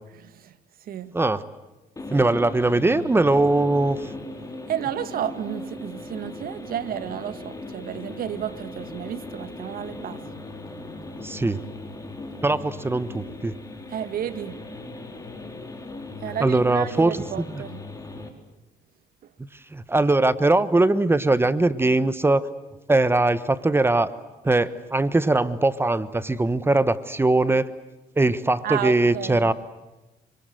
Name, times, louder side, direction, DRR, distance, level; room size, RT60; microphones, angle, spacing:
voice 1, 0.1-1.2 2.1-2.3 4.7-10.2 13.9-14.6 16.2-17.9 19.2-19.3 28.6-29.5, right 10 dB, 60° right, 1.9 m, -32 dB
sound 1, 2.0-18.3, left 2 dB, 20° left, 4.4 m, -38 dB
voice 2, 2.1-4.1 11.2-11.6 12.4-13.5 16.4-17.2 19.7-22.5 22.9-24.1 24.4-27.7 28.2-29.5, right 2 dB, 15° right, 1.2 m, -21 dB
26.5 x 25.5 x 7.9 m
cardioid pair, 110°, 17 cm